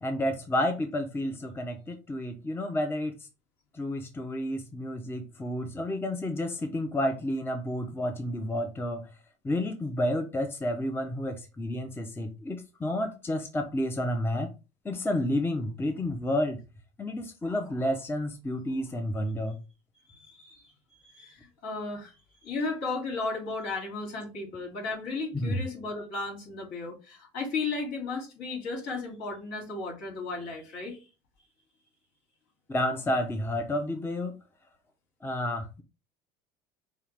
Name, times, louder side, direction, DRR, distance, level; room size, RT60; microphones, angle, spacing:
voice 1, 0.0-3.2 3.7-9.1 9.4-14.5 14.8-16.6 17.0-19.6 25.3-25.6 32.7-34.4 35.2-35.8, left 1 dB, 10° left, 0.7 m, -30 dB
voice 2, 20.1-22.1 22.4-31.0, left 3 dB, 70° left, 2.5 m, -35 dB
5.5 x 2.4 x 3.3 m
supercardioid pair, 110°, 18 cm